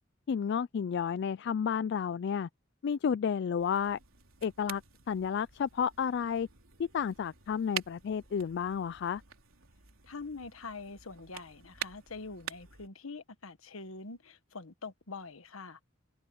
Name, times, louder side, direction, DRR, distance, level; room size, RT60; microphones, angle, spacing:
voice 1, 0.3-2.5 2.8-4.0 4.4-4.8 5.1-6.5 6.8-9.2, left 7 dB, 55° left, 0.3 m, -31 dB
sound 1, 3.6-12.9, right 8 dB, 80° right, 3.6 m, -46 dB
voice 2, 10.0-15.8, left 4 dB, 90° left, 1.3 m, -44 dB
head